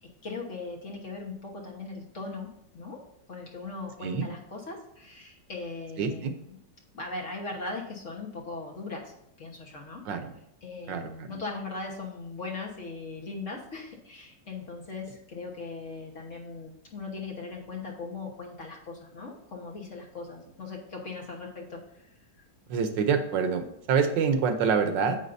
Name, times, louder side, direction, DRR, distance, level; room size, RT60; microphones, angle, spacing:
voice 1, 0.0-3.0 3.3-6.6 6.9-10.0 10.6-22.4, left 3 dB, 45° left, 0 dB, 1.5 m, -39 dB
voice 2, 6.0-6.3 10.1-10.3 10.9-11.3 22.7-25.2, right 6 dB, 90° right, 8 dB, 1.5 m, -26 dB
9.4 x 7.4 x 2.6 m, 0.74 s
omnidirectional pair, 1.9 m